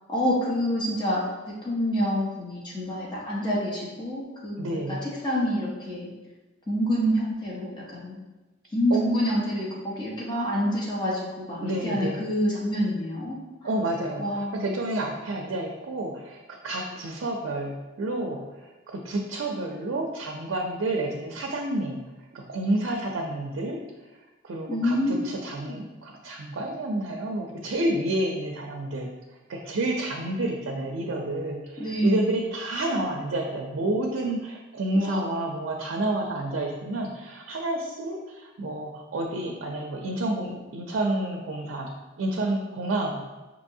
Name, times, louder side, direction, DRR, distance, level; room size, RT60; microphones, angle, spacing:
voice 1, 0.1-1.2 1.6-4.8 5.2-6.1 6.7-8.2 8.7-13.4 14.2-14.7 24.7-25.2 25.6-25.8 31.8-32.2 34.9-35.5, equal, 25° left, -6 dB, 0.9 m, -27 dB
voice 2, 4.6-5.0 8.9-9.0 11.6-12.3 13.6-22.0 22.3-23.8 24.4-29.1 29.5-41.9 42.2-43.3, right 2 dB, 85° right, 1 dB, 0.5 m, -30 dB
5.4 x 2.8 x 2.7 m, 1.1 s
head